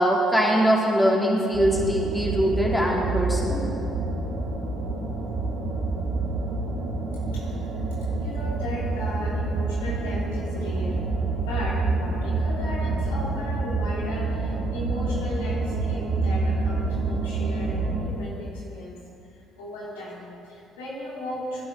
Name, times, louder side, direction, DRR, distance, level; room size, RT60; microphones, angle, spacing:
voice 1, 0.0-3.6, equal, 10° left, -3 dB, 3.3 m, -22 dB
sound 1, 1.5-18.0, right 3 dB, 75° right, 2.5 m, -27 dB
voice 2, 7.3-11.0 11.4-19.0 19.6-21.7, left 1 dB, 80° left, -6 dB, 2.9 m, -36 dB
20.0 x 11.0 x 3.8 m, 2.6 s
hypercardioid pair, 50°, 0 cm